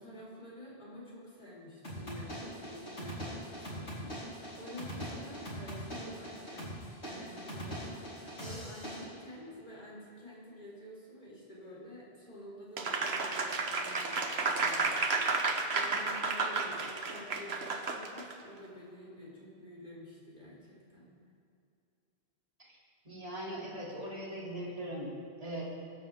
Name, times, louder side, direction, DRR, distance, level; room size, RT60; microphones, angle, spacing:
voice 1, 0.0-6.7 7.0-21.1, left 1 dB, 45° left, -6 dB, 4.6 m, -49 dB
sound 1, 1.8-9.1, equal, 85° left, 4.7 m, -42 dB
Applause, 12.8-18.3, right 4 dB, 75° right, 1.4 m, -32 dB
voice 2, 23.0-25.6, right 1 dB, 35° right, -5 dB, 3.3 m, -40 dB
23.5 x 11.5 x 3.7 m, 2.5 s
omnidirectional pair, 1.1 m